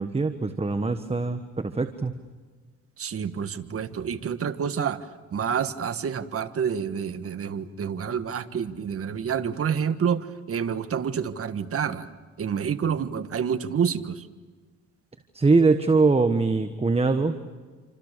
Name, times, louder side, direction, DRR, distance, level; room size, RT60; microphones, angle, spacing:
voice 1, 0.0-2.1 15.3-17.3, right 3 dB, 20° right, 8 dB, 1.4 m, -22 dB
voice 2, 3.0-5.1 5.3-12.1 12.4-14.2, right 7 dB, 50° right, 10 dB, 1.6 m, -28 dB
28.5 x 26.0 x 6.8 m, 1.4 s
cardioid pair, 90°, 30 cm